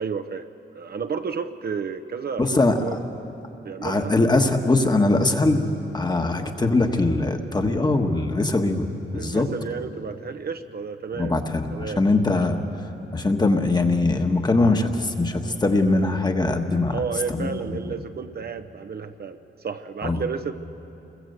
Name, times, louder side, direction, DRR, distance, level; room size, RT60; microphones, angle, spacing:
voice 1, 0.0-2.5 2.8-3.0 3.6-4.2 9.1-11.3 11.7-12.0 16.9-19.4 19.6-20.5, right 6 dB, 50° right, 8 dB, 0.8 m, -31 dB
voice 2, 2.4-2.8 3.8-5.6 5.9-9.5 11.2-12.6 13.1-17.0 17.4-17.8 20.0-20.2, left 2 dB, 20° left, 5 dB, 1.3 m, -21 dB
28.5 x 21.5 x 7.9 m, 2.9 s
wide cardioid pair, 170°, 20 cm